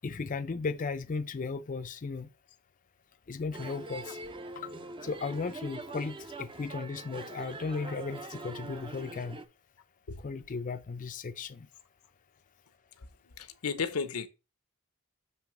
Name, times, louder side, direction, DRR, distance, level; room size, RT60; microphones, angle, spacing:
voice 1, 0.0-2.3 3.3-4.2 4.6-4.8 5.0-9.4 10.2-11.7, left 4 dB, 40° left, 0.5 m, -36 dB
sound 1, 3.5-9.5, right 2 dB, 25° right, 0.5 m, -43 dB
voice 2, 13.0-14.3, left 5 dB, 85° left, 0.8 m, -35 dB
6.9 x 3.4 x 5.8 m
head